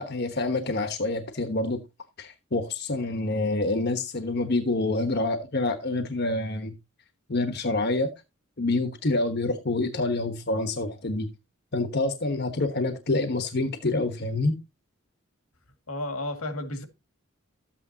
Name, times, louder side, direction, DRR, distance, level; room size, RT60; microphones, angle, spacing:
voice 1, 0.0-1.8 2.2-6.7 7.3-8.1 8.6-11.3 11.7-14.6, left 2 dB, 50° left, 1.2 m, -27 dB
voice 2, 15.9-16.9, left 1 dB, 85° left, 2.2 m, -32 dB
13.0 x 8.6 x 2.8 m
head